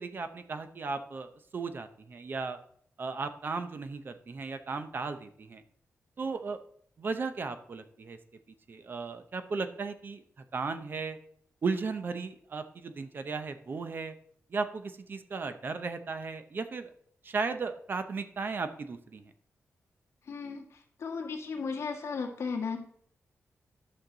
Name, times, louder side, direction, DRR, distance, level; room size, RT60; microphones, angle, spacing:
voice 1, 0.0-2.6 3.0-5.6 6.2-6.6 7.0-8.2 8.7-10.2 10.5-11.2 11.6-14.1 14.5-16.9 17.2-19.3, right 4 dB, 40° right, 9 dB, 0.7 m, -35 dB
voice 2, 20.3-22.8, left 5 dB, 65° left, 2 dB, 1.6 m, -35 dB
11.5 x 6.5 x 3.9 m, 0.63 s
wide cardioid pair, 170°, 5 cm